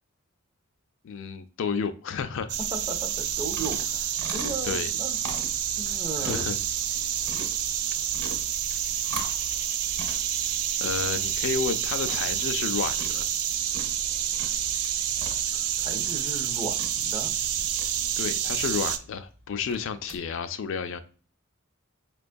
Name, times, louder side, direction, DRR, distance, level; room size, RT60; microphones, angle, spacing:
voice 1, 1.0-2.6 4.6-4.9 6.2-6.6 10.8-13.3 18.2-21.0, left 6 dB, 60° left, 0.4 m, -31 dB
sound 1, 2.5-19.0, right 10 dB, 85° right, 0.4 m, -28 dB
voice 2, 2.6-5.2 5.8-6.5 15.5-17.4, right 2 dB, 20° right, 0.4 m, -36 dB
sound 2, 3.1-20.2, right 2 dB, 45° right, 1.1 m, -43 dB
5.1 x 2.2 x 2.5 m
head